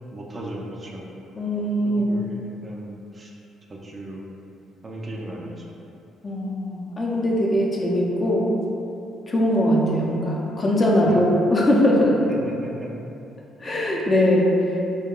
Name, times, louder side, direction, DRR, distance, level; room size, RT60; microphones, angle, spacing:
voice 1, 0.1-1.0 1.8-3.3 3.7-4.3 4.8-5.7 11.1-11.2 12.3-12.9, right 1 dB, 30° right, -2 dB, 0.4 m, -36 dB
voice 2, 1.4-2.1 6.2-8.5 9.3-12.2 13.6-14.5, equal, 30° left, -3 dB, 0.5 m, -21 dB
3.6 x 2.1 x 2.3 m, 2.8 s
cardioid pair, 85°, 0 cm